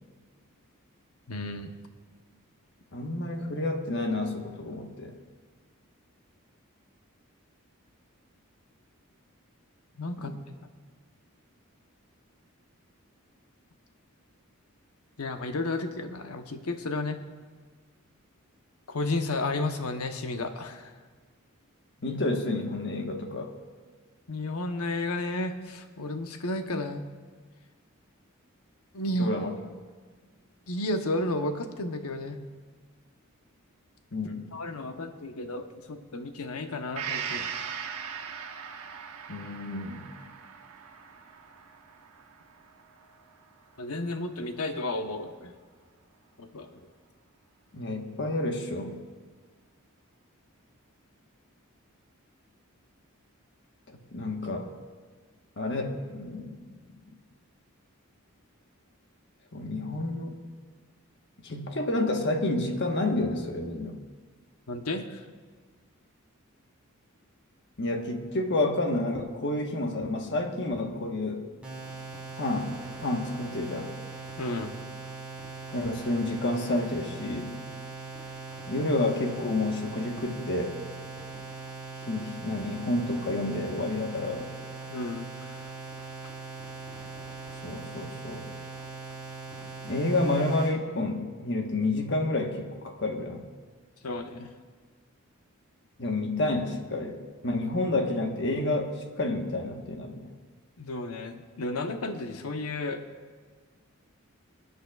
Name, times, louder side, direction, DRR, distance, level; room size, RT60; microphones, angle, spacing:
voice 1, 1.3-1.7 10.0-10.3 15.2-17.2 18.9-20.9 24.3-27.1 28.9-29.3 30.7-32.4 34.5-37.5 43.8-45.5 46.4-46.8 64.7-65.2 74.4-74.7 84.9-85.6 94.0-94.5 100.8-103.0, left 2 dB, 85° left, 6 dB, 0.9 m, -32 dB
voice 2, 2.9-5.1 10.2-10.3 22.0-23.5 29.2-29.6 34.1-34.5 39.3-40.1 47.7-49.0 54.1-54.7 55.6-56.8 59.5-60.4 61.4-64.0 67.8-71.4 72.4-72.7 73.0-73.9 75.7-77.5 78.7-80.8 82.0-84.5 87.6-88.5 89.8-93.5 96.0-100.3, left 2 dB, 55° left, 3 dB, 1.2 m, -29 dB
Gong, 37.0-44.6 45.0-45.1, right 7 dB, 90° right, 1.0 m, -40 dB
sound 1, 71.6-90.7, right 4 dB, 5° right, 3.5 m, -41 dB
26.0 x 9.5 x 2.4 m, 1.5 s
head